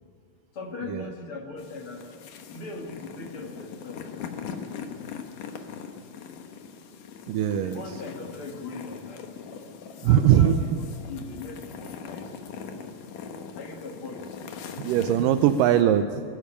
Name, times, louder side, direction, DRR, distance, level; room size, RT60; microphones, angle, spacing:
voice 1, 0.6-2.0 2.5-4.1 7.6-9.2 10.0-12.3 13.6-14.3, left 3 dB, 45° left, 3 dB, 2.4 m, -39 dB
sound 1, 1.6-15.8, left 6 dB, 70° left, 2.9 m, -41 dB
voice 2, 7.3-7.8 10.0-10.6 14.8-16.2, right 10 dB, 80° right, 9 dB, 2.2 m, -21 dB
21.0 x 14.5 x 9.9 m, 2.3 s
omnidirectional pair, 4.0 m